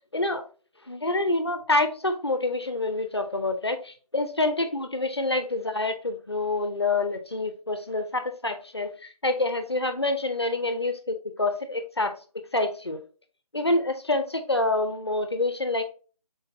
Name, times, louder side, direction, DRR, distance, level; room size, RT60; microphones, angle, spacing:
voice 1, 0.9-12.1 12.5-13.0 13.5-15.8, left 2 dB, 40° left, 0.4 m, -27 dB
4.2 x 3.8 x 2.7 m
figure-of-eight pair, 175°, 20 cm